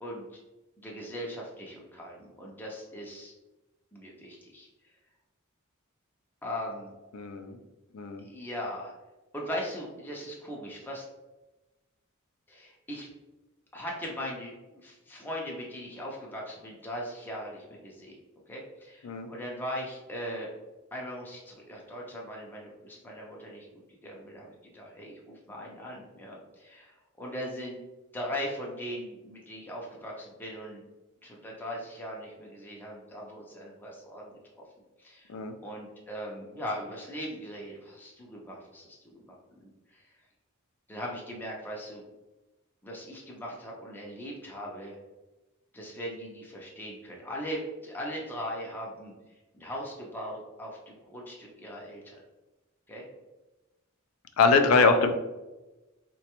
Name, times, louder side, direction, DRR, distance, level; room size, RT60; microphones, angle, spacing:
voice 1, 0.0-0.4 0.8-3.3 3.9-4.7 6.4-6.9 8.2-8.9 9.3-11.1 12.5-13.1 13.7-18.2 18.5-20.5 20.9-27.8 28.1-30.8 31.2-34.4 35.0-35.3 35.6-40.1 40.9-42.0 42.8-45.0 45.7-49.1 49.5-52.2 52.9-53.1, equal, 10° left, -2 dB, 0.4 m, -39 dB
voice 2, 7.1-7.6 7.9-8.2 19.0-19.3 35.3-35.6 54.4-55.1, left 4 dB, 75° left, 6 dB, 0.4 m, -23 dB
3.9 x 2.2 x 2.9 m, 1.1 s
head